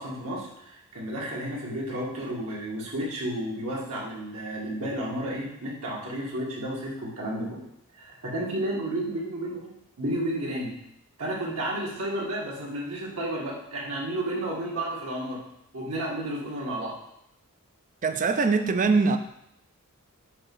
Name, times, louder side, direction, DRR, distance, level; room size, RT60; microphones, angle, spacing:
voice 1, 0.0-7.6 8.0-9.7 10.0-10.7 11.2-15.4 15.7-16.9, right 1 dB, 70° right, -4 dB, 1.8 m, -32 dB
voice 2, 18.0-19.2, right 4 dB, 35° right, 8 dB, 0.5 m, -22 dB
7.0 x 3.1 x 5.4 m, 0.76 s
head